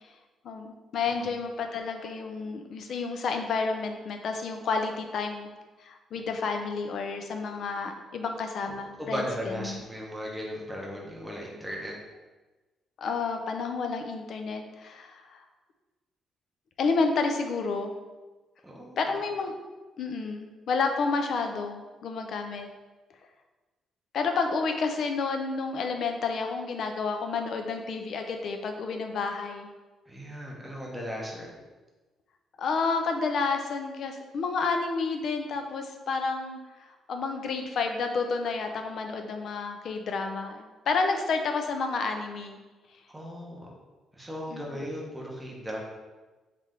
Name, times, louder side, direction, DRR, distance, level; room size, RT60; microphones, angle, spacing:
voice 1, 0.4-5.5 5.8-9.8 13.0-15.4 16.8-17.9 19.0-19.5 20.0-22.7 24.1-29.7 32.6-36.6 37.1-42.6 44.5-44.8, left 4 dB, 50° left, 5 dB, 0.4 m, -30 dB
voice 2, 8.6-11.9 18.6-19.0 30.1-31.5 43.1-43.7 44.1-45.8, equal, 5° right, -2 dB, 0.6 m, -37 dB
3.2 x 3.1 x 3.7 m, 1.2 s
cardioid pair, 180°, 0 cm